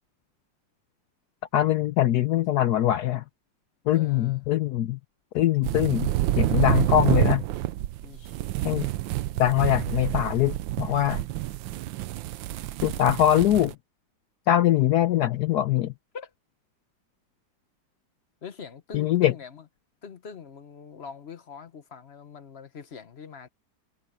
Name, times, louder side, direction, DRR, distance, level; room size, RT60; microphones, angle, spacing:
voice 1, 1.5-3.2 3.9-5.0 5.3-7.4 8.6-8.9 9.4-11.2 12.8-13.8 14.5-15.9 18.9-19.3, left 12 dB, 70° left, 1.1 m, -22 dB
voice 2, 3.9-4.4 8.0-8.4 16.1-16.3 18.4-19.6 20.0-23.5, left 6 dB, 40° left, 1.1 m, -43 dB
sound 1, 5.6-13.7, right 15 dB, 90° right, 1.4 m, -28 dB
omnidirectional pair, 2.0 m